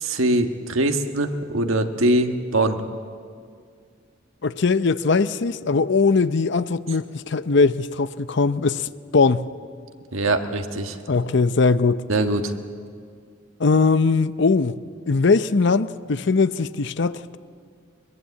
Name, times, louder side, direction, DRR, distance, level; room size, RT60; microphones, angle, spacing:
voice 1, 0.0-2.8 10.1-11.0 12.1-12.5, right 1 dB, 85° right, 1.5 m, -22 dB
voice 2, 4.4-9.5 11.1-12.0 13.6-14.8 15.1-17.4, left 4 dB, 60° left, 0.6 m, -20 dB
22.5 x 21.5 x 8.3 m
head